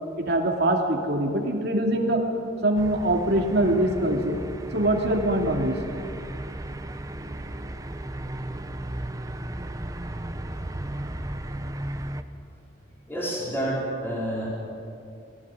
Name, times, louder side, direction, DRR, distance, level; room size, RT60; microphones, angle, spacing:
voice 1, 0.2-2.2 2.6-4.4 4.7-5.8, right 1 dB, 60° right, 2 dB, 2.7 m, -23 dB
sound 1, 2.7-12.2, right 1 dB, 20° right, 0.8 m, -35 dB
voice 2, 13.1-14.5, right 1 dB, 10° left, -6 dB, 5.0 m, -29 dB
19.5 x 16.5 x 9.0 m, 2.4 s
head